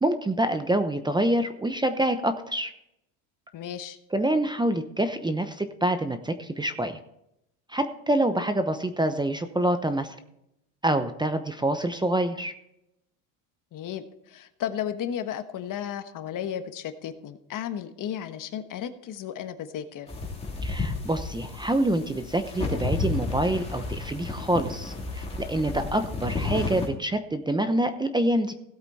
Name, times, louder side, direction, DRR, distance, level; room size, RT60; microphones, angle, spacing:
voice 1, 0.0-2.7 4.1-7.0 7.7-10.2 10.8-12.5 20.6-28.5, right 1 dB, 10° right, 9 dB, 0.8 m, -26 dB
voice 2, 3.5-4.0 13.7-20.1, left 9 dB, 50° left, 9 dB, 1.4 m, -34 dB
sound 1, 20.1-26.9, left 3 dB, 15° left, 2.8 m, -32 dB
16.5 x 8.2 x 4.2 m, 0.81 s
supercardioid pair, 115°, 42 cm